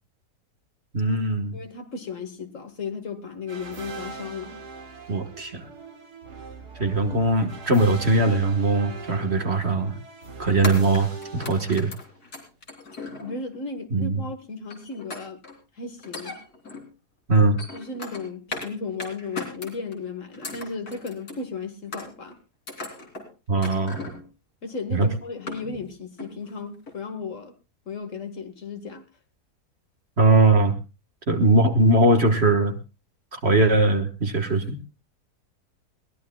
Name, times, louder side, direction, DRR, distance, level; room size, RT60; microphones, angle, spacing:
voice 1, 0.9-1.6 5.1-5.7 6.8-10.0 10.4-11.9 13.9-14.2 17.3-17.6 23.5-24.1 24.9-25.1 30.2-30.7 31.3-32.8 33.3-34.8, right 2 dB, 45° right, 7 dB, 1.6 m, -20 dB
voice 2, 1.5-4.6 13.1-15.4 15.7-16.4 17.7-22.4 24.6-27.5 27.9-29.0, left 4 dB, 55° left, 9 dB, 1.9 m, -35 dB
sound 1, 3.5-12.4, right 3 dB, 90° right, 2.8 m, -41 dB
sound 2, 9.2-9.4 10.6-13.6 14.7-15.6 16.0-16.9 17.3-18.7 19.0-20.0 20.3-21.4 21.9-22.3 22.7-23.3 23.6-24.3 24.7-24.8 25.2-25.9 26.2-26.5 26.9-27.0, left 2 dB, 70° left, 3.8 m, -37 dB
21.5 x 17.0 x 2.3 m, 0.31 s
omnidirectional pair, 1.7 m